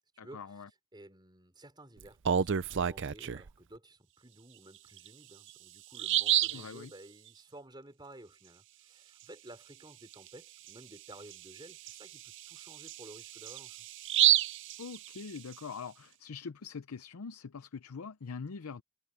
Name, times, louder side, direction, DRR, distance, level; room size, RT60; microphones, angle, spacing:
voice 1, 0.2-0.7 6.5-6.9 14.8-18.8, left 5 dB, 80° left, 0.6 m, -43 dB
voice 2, 0.9-13.8, right 1 dB, 20° right, 5.1 m, -53 dB
Bird vocalization bird call bird song, 2.0-3.5 5.0-5.1 5.5-5.6 5.9-6.7 10.1-10.3 10.7-10.8 11.3-15.5, right 10 dB, 55° right, 0.5 m, -30 dB
head